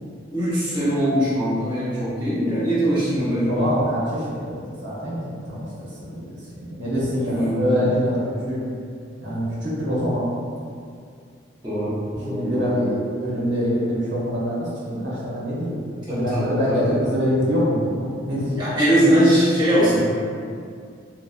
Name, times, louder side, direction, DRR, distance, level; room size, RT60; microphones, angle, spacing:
voice 1, 0.3-3.7 7.2-8.0 11.6-13.0 16.1-17.1 18.6-20.1, equal, 25° right, -13 dB, 1.0 m, -21 dB
voice 2, 3.4-6.2 6.5-8.2 8.5-8.6 9.2-10.3 12.1-15.8 16.1-18.6, equal, 75° right, -8 dB, 0.8 m, -25 dB
2.8 x 2.0 x 2.4 m, 2.3 s
head